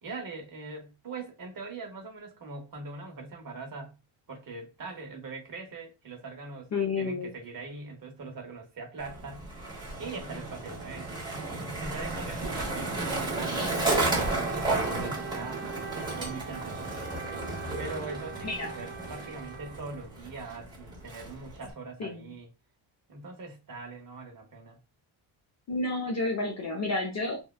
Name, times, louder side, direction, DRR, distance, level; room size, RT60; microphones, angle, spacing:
voice 1, 0.0-4.0 4.3-6.7 7.0-9.5 10.0-11.1 11.8-15.7 16.0-17.2 17.8-22.5 23.1-24.8, right 3 dB, 45° right, 0.9 m, -42 dB
voice 2, 6.7-7.3 18.4-18.7 22.0-22.2 25.7-27.4, left 3 dB, 35° left, 0.4 m, -30 dB
Skateboard, 9.0-21.7, right 2 dB, 10° right, 0.8 m, -33 dB
Wind instrument woodwind instrument, 12.9-20.5, right 7 dB, 25° right, 0.4 m, -43 dB
3.2 x 2.2 x 2.3 m
wide cardioid pair, 170°, 49 cm